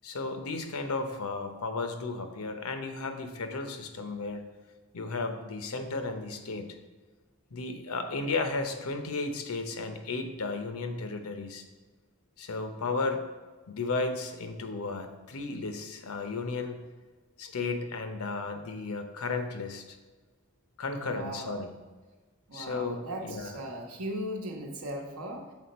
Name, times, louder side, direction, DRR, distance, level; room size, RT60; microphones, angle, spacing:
voice 1, 0.0-4.5 4.9-6.8 7.5-11.6 12.4-13.2 13.7-16.8 17.4-19.8 20.8-21.7 22.5-23.6, left 3 dB, 80° left, 7 dB, 0.7 m, -34 dB
voice 2, 20.9-21.6 22.5-25.5, right 1 dB, 90° right, 2 dB, 1.0 m, -38 dB
6.2 x 4.2 x 4.1 m, 1.3 s
head